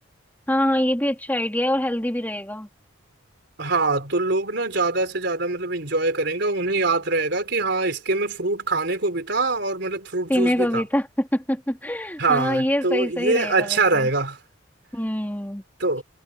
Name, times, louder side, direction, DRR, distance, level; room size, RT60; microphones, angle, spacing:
voice 1, 0.5-2.7 10.3-14.1 14.9-15.6, left 1 dB, 10° left, 3.6 m, -24 dB
voice 2, 3.6-10.8 12.2-14.4 15.8-16.0, right 3 dB, 55° right, 4.5 m, -23 dB
head